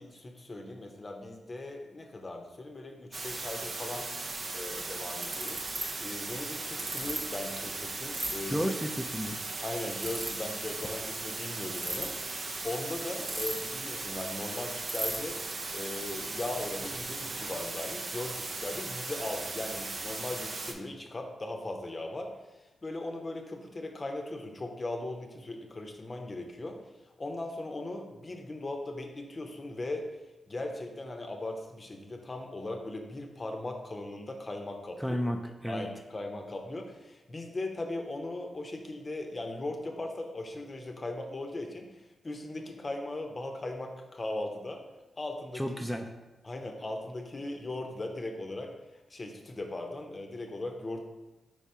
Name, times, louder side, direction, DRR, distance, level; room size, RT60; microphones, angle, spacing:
voice 1, 0.0-4.1 4.5-5.6 6.0-8.6 9.6-15.4 15.7-22.3 22.8-26.8 27.2-30.1 30.5-35.2 35.7-44.8 45.2-45.6 46.4-48.7 49.1-51.0, left 2 dB, 40° left, 3 dB, 0.7 m, -38 dB
sound 1, 3.1-20.7, right 3 dB, 50° right, 0.5 m, -38 dB
Ratchet pawl, 5.2-5.8 6.8-7.2 8.1-8.3 10.0-10.3 11.6-12.0 13.3-13.8 14.1-14.2 14.4-14.5 14.9-15.2, right 2 dB, 70° right, 1.0 m, -34 dB
voice 2, 8.5-9.4 35.0-35.9 45.5-46.1, equal, ahead, 2 dB, 0.4 m, -32 dB
4.8 x 3.4 x 2.8 m, 1.0 s
supercardioid pair, 45°, 0 cm